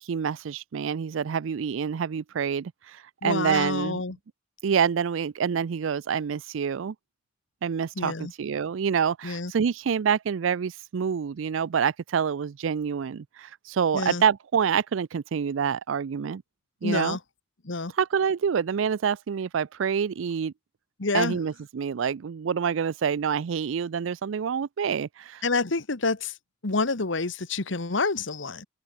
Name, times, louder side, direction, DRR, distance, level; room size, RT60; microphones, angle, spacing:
voice 1, 0.0-4.0 4.6-6.9 7.6-16.4 16.8-17.2 18.0-20.5 21.1-25.4, right 7 dB, 80° right, 0.4 m, -27 dB
voice 2, 3.2-4.2 8.0-8.3 9.2-9.5 13.9-14.2 16.8-17.2 17.6-17.9 21.0-21.4 25.4-26.3 26.6-28.7, left 3 dB, 75° left, 1.4 m, -28 dB
open air
head